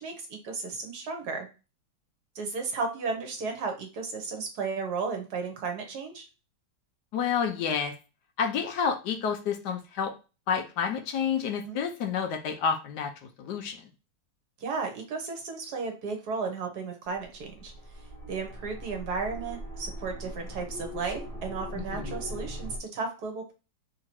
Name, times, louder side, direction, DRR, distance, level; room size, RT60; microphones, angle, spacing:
voice 1, 0.0-1.5 2.3-6.3 11.7-11.8 14.6-17.7 18.3-23.5, right 4 dB, 65° right, 3 dB, 1.4 m, -34 dB
voice 2, 7.1-7.9 8.4-10.1 10.5-13.1 13.4-13.9 21.7-22.2, left 7 dB, 75° left, 6 dB, 1.2 m, -29 dB
sound 1, 17.1-22.8, equal, 15° right, 0.8 m, -40 dB
3.8 x 2.8 x 4.3 m, 0.31 s
omnidirectional pair, 2.0 m